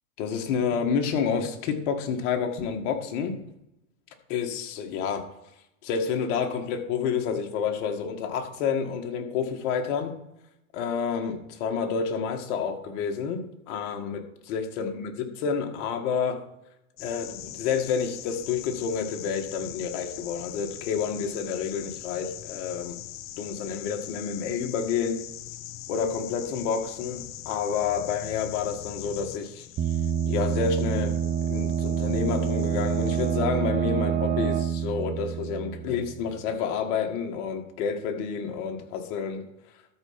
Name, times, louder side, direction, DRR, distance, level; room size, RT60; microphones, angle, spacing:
voice 1, 0.2-3.4 4.3-5.2 5.8-10.1 10.7-16.4 17.0-23.0 23.4-25.2 25.9-29.7 30.3-31.1 31.5-39.4, left 6 dB, 55° left, 4 dB, 1.9 m, -29 dB
sound 1, 17.0-33.4, left 14 dB, 30° left, 0.6 m, -42 dB
sound 2, 29.8-36.4, right 8 dB, 20° right, 0.6 m, -27 dB
13.0 x 4.6 x 5.9 m, 0.83 s
hypercardioid pair, 115°, 43 cm